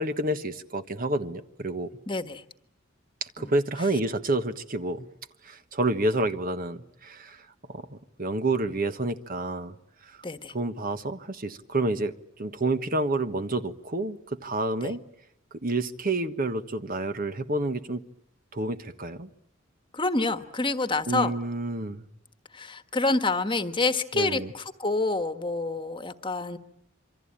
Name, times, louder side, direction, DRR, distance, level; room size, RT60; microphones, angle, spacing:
voice 1, 0.0-1.9 3.4-5.1 5.4-9.7 10.1-10.2 10.5-12.1 12.4-15.0 15.6-18.0 18.5-19.3 21.1-22.0 24.1-24.5, right 2 dB, 45° right, 10 dB, 1.3 m, -29 dB
voice 2, 2.1-2.4 3.4-3.5 10.2-10.5 14.8-14.9 19.9-21.3 22.5-26.6, left 3 dB, 25° left, 9 dB, 1.4 m, -27 dB
27.0 x 24.5 x 8.8 m, 0.75 s
head